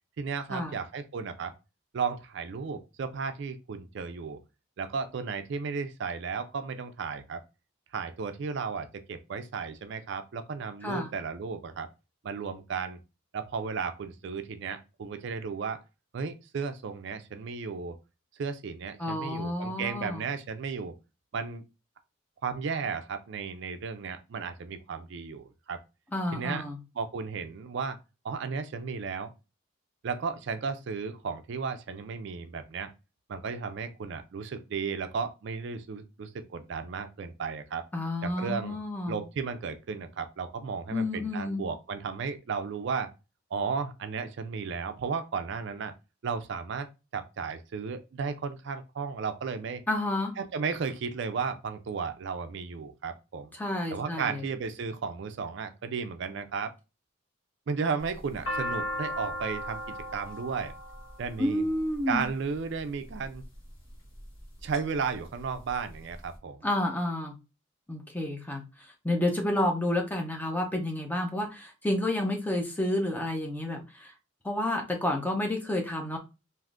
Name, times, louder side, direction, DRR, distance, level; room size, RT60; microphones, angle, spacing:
voice 1, 0.2-1.5 1.9-4.4 4.8-7.4 7.9-11.9 12.2-13.0 13.3-15.8 16.1-18.0 18.4-20.9 21.3-21.6 22.4-25.8 26.3-26.6 27.0-28.0 28.2-29.3 30.0-32.9 33.3-37.9 38.2-38.8 39.1-43.1 43.5-45.9 46.2-46.9 47.1-49.8 50.4-53.5 53.9-56.7 57.7-60.7 61.2-61.6 62.1-63.4 64.6-66.7, right 5 dB, 55° right, 9 dB, 0.4 m, -34 dB
voice 2, 19.0-20.2 26.1-26.8 37.9-39.2 40.9-41.6 49.9-50.3 53.5-54.4 61.4-62.2 66.6-67.3 67.9-74.1 74.4-76.2, left 1 dB, 10° left, 2 dB, 0.5 m, -30 dB
sound 1, 58.0-62.2 63.1-63.5 64.1-64.8 65.1-65.2 65.4-66.2, left 1 dB, 65° left, 1.2 m, -36 dB
3.5 x 2.5 x 2.4 m, 0.28 s
head